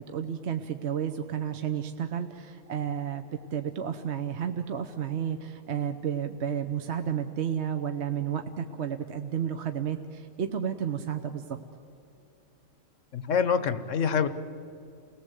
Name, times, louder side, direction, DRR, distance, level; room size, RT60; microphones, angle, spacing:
voice 1, 0.0-11.4, right 8 dB, 65° right, 7 dB, 1.1 m, -32 dB
voice 2, 13.1-14.3, left 6 dB, 80° left, 13 dB, 1.3 m, -25 dB
29.0 x 18.5 x 8.1 m, 2.7 s
omnidirectional pair, 1.3 m